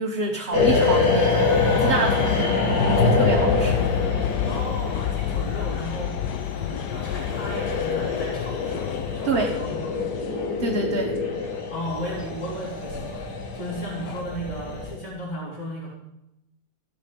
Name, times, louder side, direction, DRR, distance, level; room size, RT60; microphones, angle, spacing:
voice 1, 0.0-1.5 1.8-2.4 2.9-3.8 9.2-9.5 10.6-11.2, right 3 dB, 40° right, 1 dB, 1.4 m, -27 dB
sound 1, 0.5-14.9, left 3 dB, 70° left, 3.0 m, -25 dB
sound 2, 0.6-14.2, left 9 dB, 90° left, 1.3 m, -30 dB
voice 2, 4.4-6.1 6.6-10.2 11.7-15.9, equal, 25° left, -7 dB, 3.8 m, -35 dB
15.0 x 7.2 x 8.3 m, 0.87 s
omnidirectional pair, 1.7 m